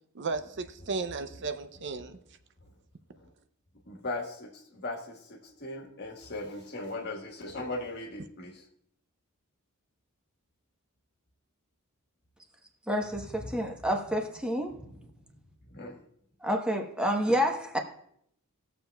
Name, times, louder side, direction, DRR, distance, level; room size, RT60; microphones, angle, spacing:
voice 1, 0.1-2.2, right 4 dB, 55° right, 9 dB, 0.5 m, -34 dB
voice 2, 3.9-8.6 14.8-14.9 15.7-16.0, left 2 dB, 50° left, 2 dB, 1.4 m, -38 dB
voice 3, 12.9-14.7 16.4-17.8, equal, 5° right, 1 dB, 1.0 m, -29 dB
19.0 x 7.1 x 2.3 m, 0.71 s
head